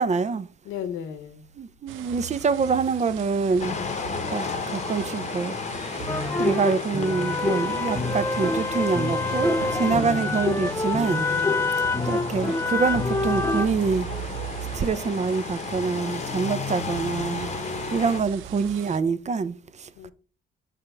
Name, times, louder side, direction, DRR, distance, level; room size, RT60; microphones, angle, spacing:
voice 1, 0.0-0.5 1.6-3.8 4.3-5.6 6.4-11.3 12.0-14.1 14.7-17.5 17.9-20.1, right 5 dB, 35° right, 0.5 m, -25 dB
voice 2, 0.6-1.4 9.8-10.3 11.2-11.8 20.0-20.1, left 8 dB, 90° left, 0.9 m, -35 dB
sound 1, 1.9-19.0, right 12 dB, 90° right, 0.6 m, -39 dB
sound 2, 3.6-18.2, left 5 dB, 35° left, 0.9 m, -33 dB
sound 3, 6.1-13.7, left 3 dB, 15° left, 0.5 m, -26 dB
5.8 x 3.4 x 5.4 m
cardioid pair, 90°, 20 cm